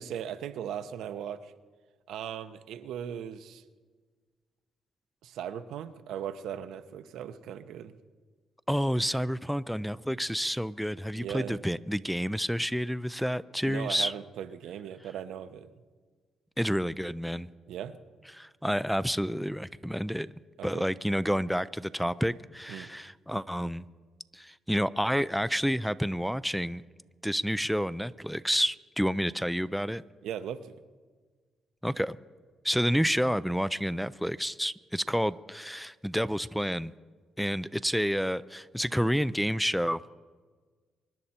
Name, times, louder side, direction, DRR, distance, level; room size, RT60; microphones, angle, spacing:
voice 1, 0.0-1.5 2.1-3.6 5.2-8.0 11.1-11.6 13.7-15.7 17.7-18.0 20.6-20.9 22.7-22.9 30.2-30.7, right 9 dB, 80° right, 10 dB, 0.8 m, -38 dB
voice 2, 8.7-14.1 16.6-17.5 18.3-20.3 20.6-23.8 24.3-26.8 27.2-30.0 31.8-32.2 32.6-36.9 37.4-40.0, equal, ahead, 16 dB, 0.4 m, -29 dB
24.5 x 10.5 x 4.3 m, 1.4 s
cardioid pair, 90°, 0 cm